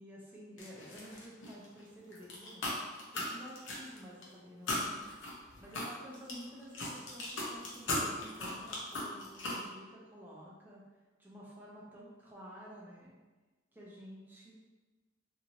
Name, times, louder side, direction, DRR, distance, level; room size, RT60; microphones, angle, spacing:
voice 1, 0.0-2.7 3.1-13.1 13.7-14.5, equal, 10° right, -6 dB, 0.6 m, -51 dB
sound 1, 0.6-1.8 2.1-4.2 4.7-9.6, left 1 dB, 85° left, 0.7 m, -38 dB
2.9 x 2.8 x 2.7 m, 1.2 s
head